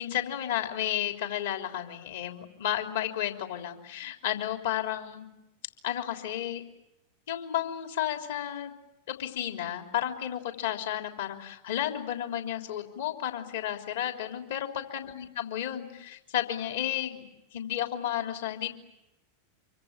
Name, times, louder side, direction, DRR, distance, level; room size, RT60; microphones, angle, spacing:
voice 1, 0.0-5.3 5.8-6.6 7.3-8.7 9.1-18.7, left 11 dB, 55° left, 4 dB, 3.3 m, -32 dB
26.5 x 24.5 x 9.2 m, 0.89 s
figure-of-eight pair, 90°, 0 cm